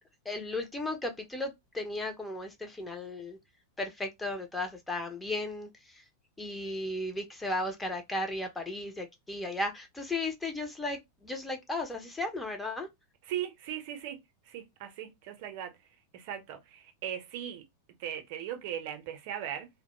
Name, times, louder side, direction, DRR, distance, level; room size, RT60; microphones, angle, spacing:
voice 1, 0.3-3.4 3.8-6.0 6.4-12.9, left 2 dB, 10° left, 0.4 m, -35 dB
voice 2, 13.2-15.7 16.1-17.6 18.0-19.7, right 10 dB, 45° right, 0.5 m, -38 dB
2.1 x 2.0 x 2.9 m
figure-of-eight pair, 90°, 0 cm